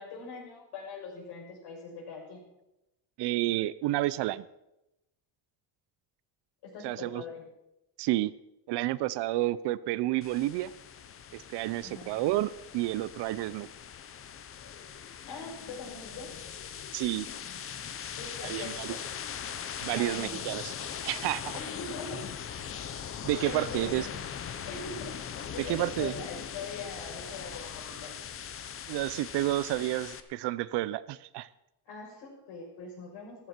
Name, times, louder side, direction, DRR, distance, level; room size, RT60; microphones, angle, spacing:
voice 1, 0.0-2.4 6.6-7.4 11.8-12.1 15.3-16.3 18.2-18.8 19.9-20.4 21.5-22.2 23.3-24.1 24.7-28.1 31.9-33.5, left 4 dB, 75° left, 0 dB, 5.9 m, -42 dB
voice 2, 3.2-4.5 6.8-7.2 8.0-8.3 8.7-10.7 11.3-13.7 16.9-17.3 18.4-19.0 19.8-20.7 21.0-21.6 23.2-24.1 25.6-26.1 28.9-31.5, right 16 dB, 70° right, 17 dB, 0.7 m, -30 dB
sound 1, 10.2-30.2, left 8 dB, 30° left, 0.8 m, -40 dB
14.0 x 14.0 x 4.5 m, 0.91 s
cardioid pair, 160°, 42 cm